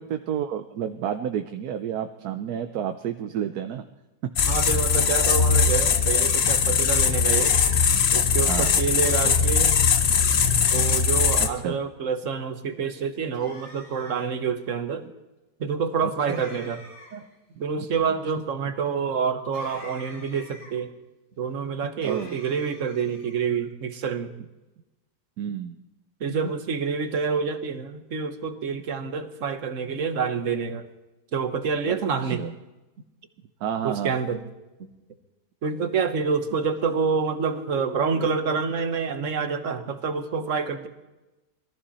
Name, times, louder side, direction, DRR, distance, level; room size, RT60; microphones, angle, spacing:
voice 1, 0.0-3.8 4.5-4.8 8.4-8.8 10.8-10.9 11.4-11.8 16.0-16.4 17.8-17.9 22.0-22.4 25.4-25.8 31.9-32.5 33.6-34.2 38.1-38.3, right 9 dB, 70° right, 7 dB, 1.2 m, -31 dB
sound 1, 4.4-11.5, left 6 dB, 50° left, 0.9 m, -20 dB
voice 2, 4.5-7.6 8.1-9.8 10.7-15.1 15.6-16.8 17.1-17.2 17.6-20.9 21.4-24.3 26.2-30.9 31.3-32.4 33.8-34.4 34.8-34.9 35.6-40.9, right 5 dB, 50° right, 9 dB, 1.5 m, -27 dB
sound 2, 7.2-8.2 10.6-11.4 13.3-14.3 16.3-17.3 19.5-20.7 22.0-23.4, left 2 dB, 80° left, 3.5 m, -46 dB
21.5 x 14.5 x 4.2 m, 1.0 s
omnidirectional pair, 1.8 m